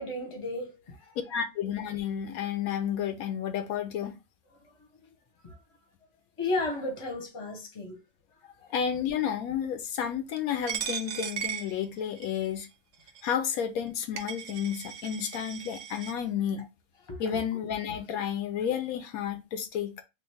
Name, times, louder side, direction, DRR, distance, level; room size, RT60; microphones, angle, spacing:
voice 1, 0.0-1.2 5.4-5.6 6.4-8.0 8.6-8.7 17.1-17.4, left 2 dB, 25° left, 0.8 m, -34 dB
voice 2, 1.3-4.1 8.7-12.7 13.2-16.7 17.2-20.0, left 8 dB, 80° left, 1.0 m, -31 dB
Coin (dropping), 10.7-12.4 13.1-13.2 13.9-14.0 14.2-16.1, right 8 dB, 70° right, 0.8 m, -37 dB
3.1 x 2.4 x 3.3 m
omnidirectional pair, 1.5 m